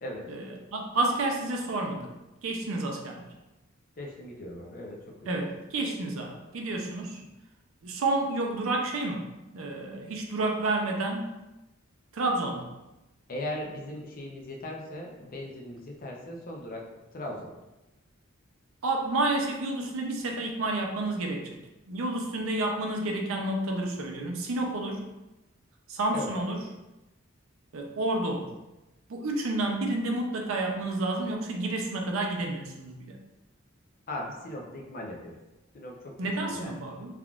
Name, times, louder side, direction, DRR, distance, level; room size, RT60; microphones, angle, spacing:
voice 1, 0.3-2.1 2.4-3.3 5.3-7.2 7.8-11.3 12.1-12.7 18.8-21.6 21.9-25.0 25.9-26.6 27.7-28.5 29.1-33.2 36.2-37.1, right 2 dB, 75° right, 2 dB, 0.5 m, -30 dB
voice 2, 4.0-5.4 13.3-16.9 17.1-17.5 26.1-26.7 34.1-35.4 35.7-36.2 36.5-36.7, left 1 dB, 45° left, 0 dB, 0.5 m, -38 dB
3.5 x 2.4 x 2.3 m, 1.0 s
head